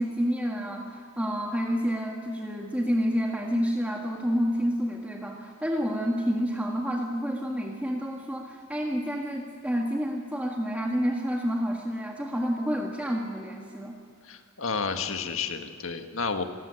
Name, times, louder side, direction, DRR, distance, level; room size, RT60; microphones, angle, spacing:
voice 1, 0.0-14.0, equal, 5° right, -1 dB, 1.7 m, -29 dB
voice 2, 14.2-16.4, left 5 dB, 75° left, 6 dB, 1.6 m, -31 dB
26.5 x 14.5 x 10.0 m, 2.2 s
head